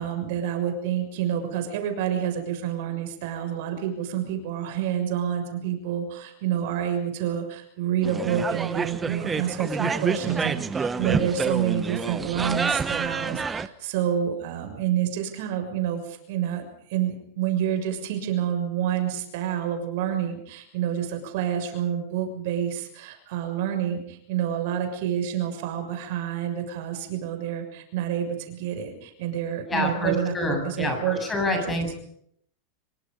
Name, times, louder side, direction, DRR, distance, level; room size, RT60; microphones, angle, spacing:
voice 1, 0.0-30.3 30.6-31.2 31.5-31.8, right 9 dB, 60° right, 6 dB, 6.5 m, -28 dB
sound 1, 8.0-13.7, right 5 dB, 15° right, 1.1 m, -28 dB
voice 2, 29.7-32.0, left 1 dB, 15° left, 4 dB, 7.7 m, -27 dB
26.5 x 24.0 x 5.4 m, 0.69 s
supercardioid pair, 155°, 0 cm